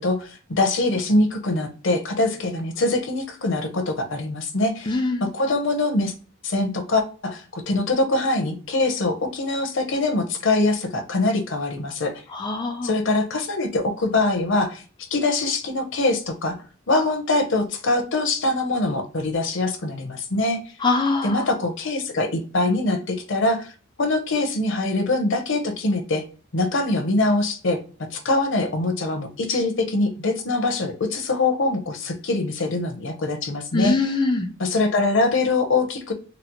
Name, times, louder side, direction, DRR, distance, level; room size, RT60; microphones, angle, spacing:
voice 1, 0.0-6.1 6.4-12.2 12.8-14.8 15.1-16.6 16.9-20.6 21.2-23.7 24.0-26.2 26.5-34.0 34.6-36.1, left 2 dB, 65° left, 5 dB, 0.8 m, -23 dB
voice 2, 4.9-5.3 12.3-12.9 20.8-21.4 33.7-34.5, left 3 dB, 20° left, 2 dB, 0.4 m, -23 dB
4.0 x 2.0 x 2.9 m, 0.37 s
head